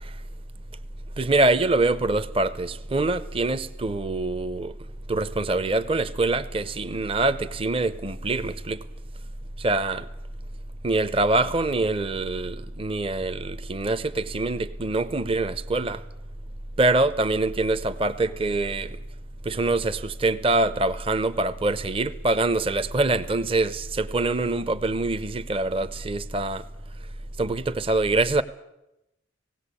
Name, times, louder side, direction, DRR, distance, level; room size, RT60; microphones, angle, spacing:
voice 1, 1.2-4.8 5.1-8.8 9.6-10.0 10.8-16.0 16.8-19.0 19.4-26.6 27.4-28.4, right 2 dB, 30° right, 0.7 m, -24 dB
18.5 x 17.0 x 8.4 m
head